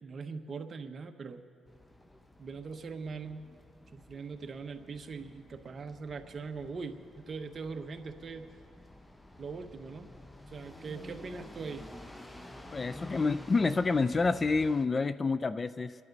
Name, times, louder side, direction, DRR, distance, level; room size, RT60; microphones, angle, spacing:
voice 1, 0.0-1.4 2.4-3.5 3.9-8.5 9.4-10.1 10.5-11.9, right 4 dB, 45° right, 6 dB, 1.1 m, -41 dB
sound 1, 1.7-14.9, left 1 dB, 15° left, 0.8 m, -51 dB
voice 2, 12.7-15.9, left 4 dB, 30° left, 14 dB, 0.4 m, -28 dB
29.0 x 11.0 x 4.0 m, 2.2 s
cardioid pair, 90°, 0 cm